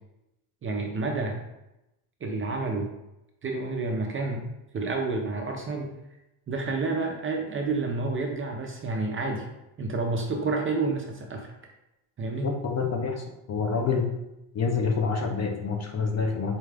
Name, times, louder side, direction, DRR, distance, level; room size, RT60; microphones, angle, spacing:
voice 1, 0.6-1.4 2.2-2.9 3.4-5.9 6.5-9.4 9.8-11.5 12.2-12.6, right 3 dB, 30° right, 2 dB, 0.5 m, -29 dB
voice 2, 12.4-14.1 14.5-16.6, left 5 dB, 35° left, 3 dB, 0.5 m, -27 dB
4.7 x 2.3 x 3.3 m, 0.90 s
cardioid pair, 130°, 46 cm